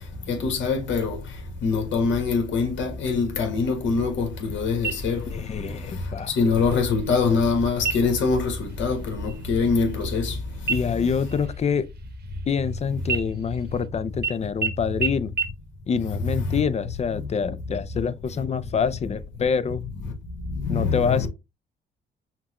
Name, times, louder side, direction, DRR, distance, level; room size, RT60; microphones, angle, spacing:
voice 1, 0.3-1.2 1.6-5.2 6.4-10.3 20.7-21.3, left 4 dB, 70° left, 1.3 m, -23 dB
sound 1, 4.8-5.5 5.9-6.0 6.6-7.1 7.8-8.3 8.7-9.0 9.2-10.4 10.7-12.7 13.1-13.8 14.2-14.3 14.6-14.7 15.0-15.1 15.4-15.5, right 6 dB, 55° right, 0.9 m, -30 dB
voice 2, 5.3-6.3 10.7-11.9 12.5-15.3 15.9-19.8 20.7-21.3, left 6 dB, 35° left, 0.4 m, -26 dB
5.8 x 2.2 x 3.0 m
cardioid pair, 90°, 20 cm